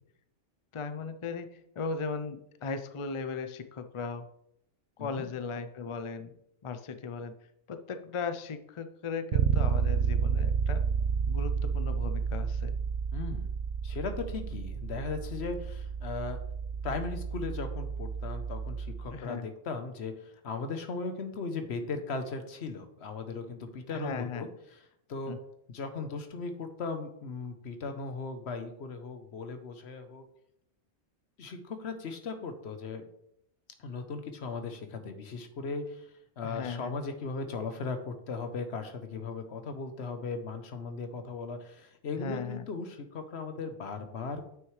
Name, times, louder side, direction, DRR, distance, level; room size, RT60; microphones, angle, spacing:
voice 1, 0.7-4.3 5.0-6.3 6.6-7.3 7.7-10.8 11.3-12.7 19.1-19.5 23.9-24.5 25.3-25.4 36.4-36.9 42.1-42.6, left 4 dB, 45° left, 9 dB, 0.4 m, -37 dB
Bass guitar, 9.3-19.2, right 6 dB, 85° right, 0.9 m, -31 dB
voice 2, 13.1-13.5 13.8-16.4 16.8-24.8 25.1-25.4 25.7-30.2 31.4-33.0 33.8-44.5, left 4 dB, 70° left, 8 dB, 1.1 m, -37 dB
9.0 x 6.2 x 3.2 m, 0.75 s
omnidirectional pair, 1.2 m